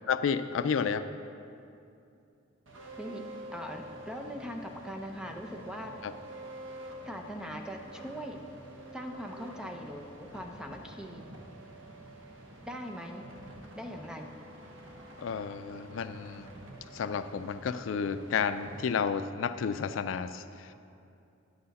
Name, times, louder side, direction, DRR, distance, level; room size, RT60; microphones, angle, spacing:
voice 1, 0.1-1.0 6.0-6.1 15.2-16.5 16.9-20.7, left 6 dB, 80° left, 11 dB, 0.4 m, -31 dB
sound 1, 2.7-18.8, right 1 dB, 75° right, 1.1 m, -48 dB
voice 2, 3.5-5.9 7.0-8.4 8.9-11.3 12.7-13.2 13.7-14.3, equal, 5° right, 3 dB, 0.6 m, -41 dB
10.5 x 8.0 x 4.1 m, 2.6 s
head